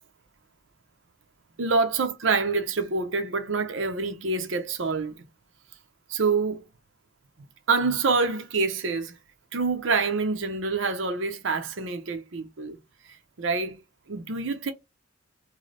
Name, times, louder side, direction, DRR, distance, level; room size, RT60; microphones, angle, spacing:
voice 1, 1.6-5.2 6.1-6.6 7.7-9.1 9.5-12.8 13.4-13.8 14.1-14.7, right 4 dB, 70° right, 0.7 m, -26 dB
3.2 x 2.2 x 3.9 m
head